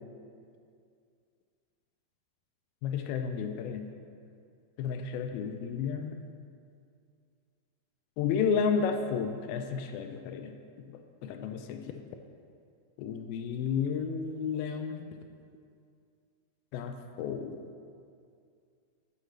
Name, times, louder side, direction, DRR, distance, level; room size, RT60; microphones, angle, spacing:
voice 1, 2.8-3.9 4.8-6.2 8.2-10.6 10.8-12.0 13.0-15.1 16.7-17.6, left 6 dB, 85° left, 6 dB, 2.4 m, -32 dB
11.5 x 8.6 x 3.2 m, 2.3 s
omnidirectional pair, 4.3 m